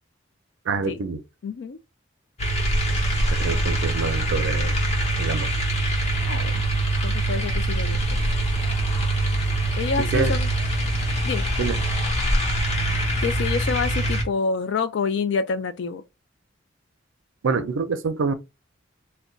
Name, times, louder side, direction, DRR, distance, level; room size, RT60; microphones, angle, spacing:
voice 1, 0.7-1.2 2.9-3.0 3.3-4.7 5.2-5.5 10.1-10.3 11.6-11.8 17.4-18.3, right 4 dB, 80° right, 0.5 m, -26 dB
voice 2, 1.4-1.8 6.2-6.6 7.0-8.2 9.7-10.5 11.3-11.4 13.2-16.0, left 4 dB, 60° left, 0.3 m, -27 dB
sound 1, 2.4-14.2, right 1 dB, 35° left, 0.7 m, -23 dB
2.3 x 2.2 x 3.7 m
head